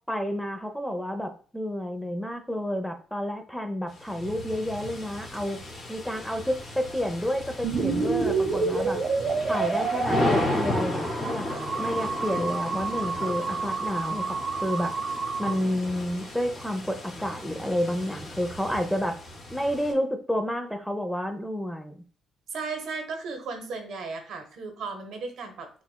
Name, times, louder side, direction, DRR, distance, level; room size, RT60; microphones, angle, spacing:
voice 1, 0.1-5.6 5.9-9.0 9.5-11.4 11.8-14.9 15.4-19.1 19.5-22.0, equal, 5° left, 6 dB, 0.5 m, -30 dB
sound 1, 3.9-19.9, left 2 dB, 50° left, 1.8 m, -34 dB
sound 2, 7.6-15.5, right 4 dB, 50° right, 0.8 m, -29 dB
voice 2, 22.5-25.7, right 4 dB, 75° right, 5 dB, 1.0 m, -35 dB
7.0 x 2.4 x 2.2 m, 0.42 s
cardioid pair, 90°, 0 cm